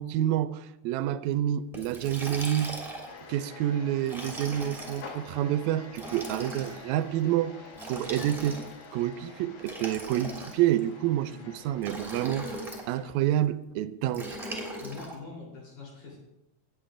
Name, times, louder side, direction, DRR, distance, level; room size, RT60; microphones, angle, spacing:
voice 1, 0.0-2.8 3.3-7.6 7.9-8.6 8.9-12.6 12.9-14.4, right 12 dB, 80° right, 1.8 m, -28 dB
Liquid, 1.7-3.2 4.0-5.1 5.9-6.8 7.7-8.8 9.6-10.8 11.8-12.9 14.1-15.1, right 1 dB, ahead, 2.1 m, -39 dB
sound 1, 3.1-13.1, left 4 dB, 60° left, 2.1 m, -48 dB
voice 2, 14.8-16.2, left 4 dB, 85° left, 5.2 m, -44 dB
19.0 x 8.2 x 2.5 m
omnidirectional pair, 3.4 m